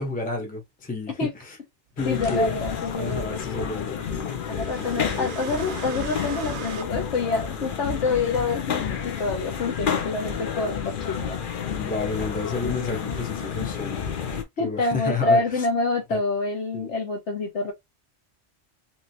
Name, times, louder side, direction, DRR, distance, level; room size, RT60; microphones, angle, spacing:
voice 1, 0.0-1.6 2.0-2.6 2.9-4.7 5.1-5.3 11.8-14.1 14.6-15.7 16.1-16.2 16.7-16.9, left 3 dB, 10° left, 0.7 m, -30 dB
voice 2, 2.0-3.4 4.5-11.4 14.6-17.7, left 3 dB, 75° left, 1.3 m, -27 dB
sound 1, 2.0-14.4, left 7 dB, 55° left, 0.8 m, -30 dB
sound 2, 2.2-2.5 4.3-6.8, right 8 dB, 70° right, 0.8 m, -38 dB
2.9 x 2.8 x 2.7 m
omnidirectional pair, 1.2 m